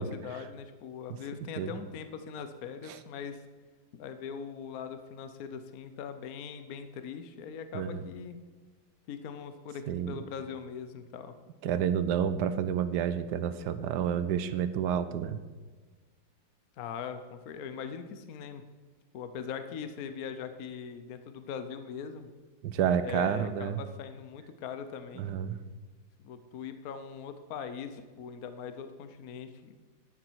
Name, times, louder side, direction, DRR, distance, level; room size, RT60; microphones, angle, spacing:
voice 1, 0.0-3.4 3.9-8.4 9.1-11.3 16.8-18.7 19.1-22.3 23.0-25.4 26.2-29.7, left 7 dB, 60° left, 9 dB, 1.1 m, -41 dB
voice 2, 7.7-8.1 9.9-10.2 11.6-15.4 22.6-23.8 25.2-25.6, right 8 dB, 70° right, 13 dB, 1.2 m, -29 dB
11.0 x 9.8 x 4.6 m, 1.4 s
omnidirectional pair, 2.0 m